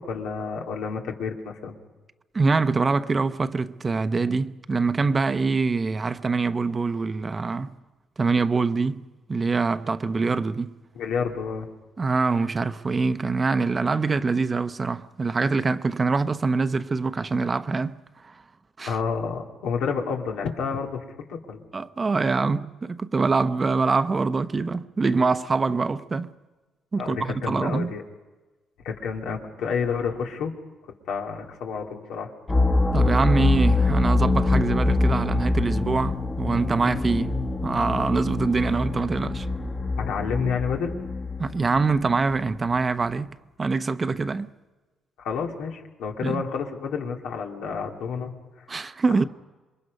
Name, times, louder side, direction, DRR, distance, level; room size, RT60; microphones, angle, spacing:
voice 1, 0.0-1.8 10.9-11.7 18.8-21.0 21.3-21.6 27.0-28.0 28.8-30.5 31.1-32.3 40.0-41.0 45.2-48.3, left 6 dB, 85° left, 2.6 m, -29 dB
voice 2, 2.3-7.7 8.2-10.8 12.0-18.0 18.2-18.3 18.8-19.0 21.7-26.3 26.9-27.9 32.9-37.4 37.6-39.5 41.4-44.5 46.2-46.4 48.7-49.2, right 4 dB, 30° right, 0.8 m, -24 dB
sound 1, 32.5-42.3, left 3 dB, 25° left, 1.4 m, -24 dB
27.5 x 22.5 x 5.4 m
cardioid pair, 90°, 0 cm